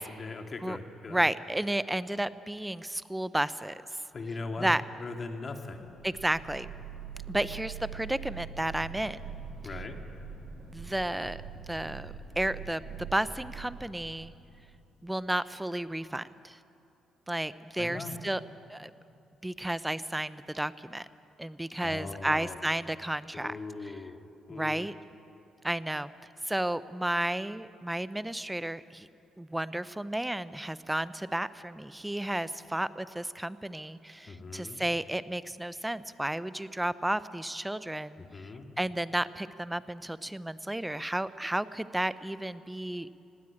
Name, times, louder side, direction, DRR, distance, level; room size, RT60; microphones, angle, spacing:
voice 1, 0.0-1.2 4.1-4.7 5.0-5.8 9.6-10.0 17.8-18.2 21.8-22.6 23.3-24.2 24.5-24.9 34.3-34.8 38.2-38.7, left 3 dB, 40° left, 5 dB, 2.2 m, -40 dB
voice 2, 1.1-3.8 4.6-4.8 6.0-6.7 7.3-9.2 10.7-14.3 15.0-16.6 17.3-18.4 18.7-18.9 19.4-21.1 21.4-23.6 24.5-24.9 25.6-26.1 26.5-29.1 29.4-38.2 38.8-43.1, right 1 dB, 10° right, 16 dB, 0.6 m, -32 dB
sound 1, 5.9-15.0, right 6 dB, 70° right, 4.4 m, -43 dB
19.5 x 16.5 x 8.7 m, 2.7 s
cardioid pair, 90°, 0 cm